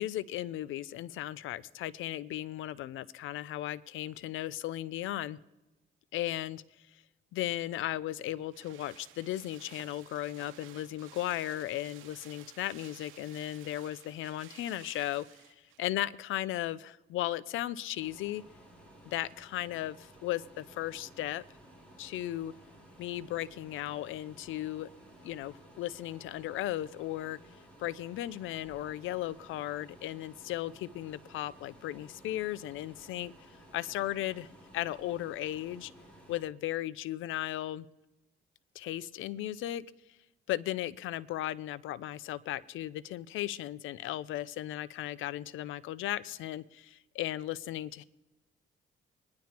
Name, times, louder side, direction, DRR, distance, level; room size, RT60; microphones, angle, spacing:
voice 1, 0.0-5.4 6.1-6.6 7.3-15.2 15.8-18.4 19.1-21.4 22.0-22.5 23.0-24.9 25.2-27.4 27.8-33.3 33.7-34.5 34.7-35.9 36.3-37.9 38.8-39.9 40.5-48.0, left 14 dB, 80° left, 0.5 m, -36 dB
sound 1, 7.7-15.9 16.2-16.3, right 10 dB, 90° right, 1.1 m, -55 dB
sound 2, 18.0-36.4, equal, 5° left, 5.4 m, -56 dB
22.0 x 10.5 x 3.0 m
cardioid pair, 90°, 20 cm